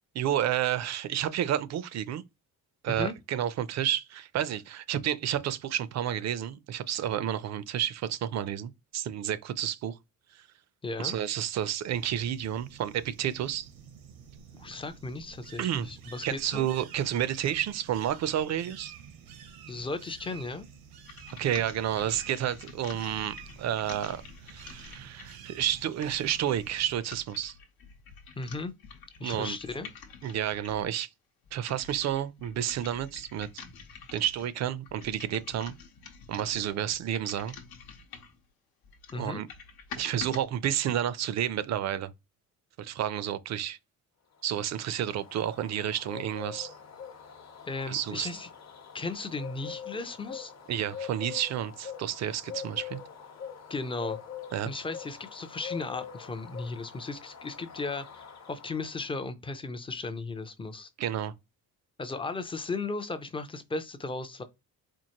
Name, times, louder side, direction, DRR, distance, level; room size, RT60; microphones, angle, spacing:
voice 1, 0.1-2.2 2.8-10.0 11.0-13.7 15.6-15.9 16.2-18.9 21.4-27.5 29.2-29.6 30.2-31.1 31.5-33.6 34.1-35.7 36.3-37.5 39.1-39.5 40.0-42.1 42.8-43.8 44.4-46.7 47.9-48.3 50.7-53.0 54.5-54.7 61.0-61.3, right 10 dB, 50° right, 0.4 m, -30 dB
voice 2, 10.8-11.2 14.5-16.7 19.7-20.7 28.4-28.7 29.2-29.9 39.1-39.4 47.7-48.5 48.9-50.5 53.7-54.2 54.7-60.9 62.0-64.4, left 3 dB, 15° left, 0.3 m, -36 dB
sound 1, 11.9-27.0, right 7 dB, 90° right, 0.9 m, -49 dB
sound 2, 21.0-30.9 31.4-38.4 38.8-40.4, left 6 dB, 85° left, 0.9 m, -48 dB
Bird, 44.4-59.1, left 7 dB, 50° left, 0.8 m, -44 dB
4.5 x 2.5 x 2.8 m
cardioid pair, 155°, 35 cm